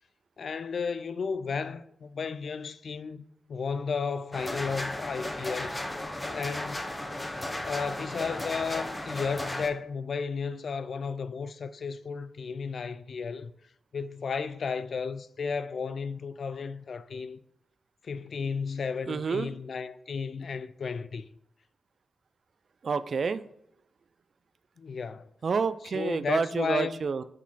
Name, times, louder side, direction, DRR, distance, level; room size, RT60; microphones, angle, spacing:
voice 1, 0.4-3.2 3.5-5.8 6.3-6.9 7.6-13.5 13.9-17.4 18.0-21.3 24.8-25.3 25.9-27.0, left 5 dB, 65° left, 0.3 m, -33 dB
sound 1, 4.3-9.7, left 1 dB, 20° left, 0.9 m, -35 dB
voice 2, 19.1-19.5 22.8-23.4 25.4-27.2, right 5 dB, 60° right, 0.3 m, -29 dB
6.1 x 4.1 x 4.0 m
supercardioid pair, 45°, 0 cm